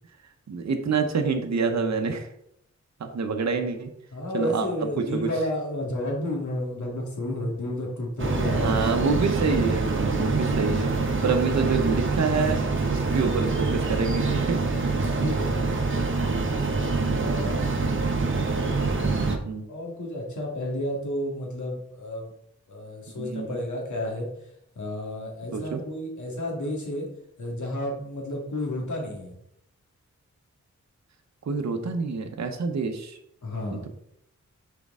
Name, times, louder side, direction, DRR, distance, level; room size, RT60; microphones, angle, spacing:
voice 1, 0.5-2.3 3.0-3.9 4.3-4.7 5.0-5.3 8.5-10.9 11.2-14.6 16.9-17.4 19.4-19.6 23.2-23.6 25.5-25.8 31.4-33.2 33.7-33.9, right 4 dB, 65° right, 4 dB, 0.8 m, -27 dB
voice 2, 4.1-9.1 15.2-15.9 17.2-17.7 19.7-22.3 22.7-24.3 24.8-27.1 27.4-29.4 33.4-33.9, left 1 dB, 75° left, -1 dB, 1.9 m, -31 dB
sound 1, 8.2-19.4, right 3 dB, 45° right, 0.9 m, -25 dB
6.3 x 4.6 x 3.6 m, 0.75 s
wide cardioid pair, 95°, 29 cm